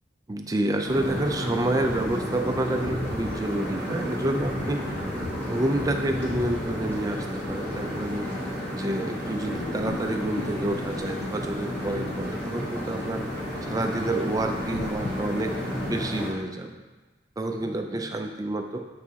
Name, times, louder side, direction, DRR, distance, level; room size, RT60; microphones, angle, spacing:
voice 1, 0.3-4.8 5.5-8.3 8.7-13.2 13.6-16.7 17.4-18.8, right 1 dB, 20° right, 4 dB, 0.4 m, -29 dB
sound 1, 0.8-16.3, equal, 10° left, 1.5 m, -32 dB
sound 2, 9.4-16.1, left 3 dB, 60° left, 0.4 m, -40 dB
8.3 x 4.1 x 2.8 m, 1.2 s
head